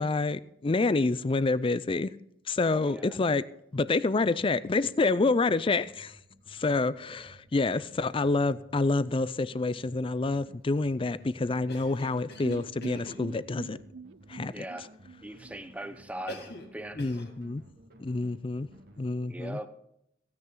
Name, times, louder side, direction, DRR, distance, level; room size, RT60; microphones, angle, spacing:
voice 1, 0.0-2.1 2.5-3.4 3.7-6.1 6.5-13.8 14.3-14.6 17.0-17.6 18.0-18.7 19.0-19.6, left 3 dB, 30° left, 0.4 m, -28 dB
voice 2, 2.6-3.2 14.5-14.9 15.2-17.0 19.2-19.7, right 1 dB, 5° right, 0.8 m, -40 dB
sound 1, 5.8-19.1, right 1 dB, 50° right, 1.7 m, -55 dB
Cough, 11.7-13.3 16.3-16.7 17.0-17.4, left 2 dB, 60° left, 1.9 m, -44 dB
sound 2, 12.4-16.3 16.6-16.7 17.0-17.1, right 5 dB, 80° right, 0.4 m, -44 dB
16.0 x 9.5 x 3.8 m
head